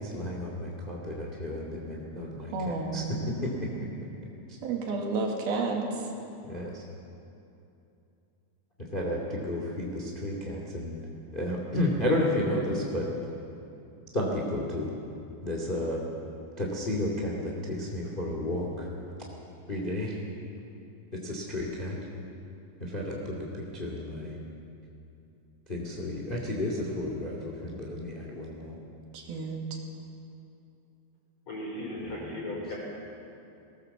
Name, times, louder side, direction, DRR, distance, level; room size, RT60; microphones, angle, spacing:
voice 1, 0.0-3.7 6.5-6.8 8.9-11.0 11.3-13.1 14.1-14.9 15.4-16.0 16.6-18.9 19.7-20.2 21.1-22.0 22.8-24.4 25.7-28.8 32.0-32.3, left 1 dB, 15° left, -1 dB, 2.0 m, -32 dB
voice 2, 2.5-3.1 4.6-5.9 29.1-29.6, right 4 dB, 85° right, 1 dB, 4.1 m, -31 dB
voice 3, 31.5-32.8, left 1 dB, 35° left, -3 dB, 5.4 m, -36 dB
19.5 x 18.5 x 7.2 m, 2.7 s
omnidirectional pair, 4.2 m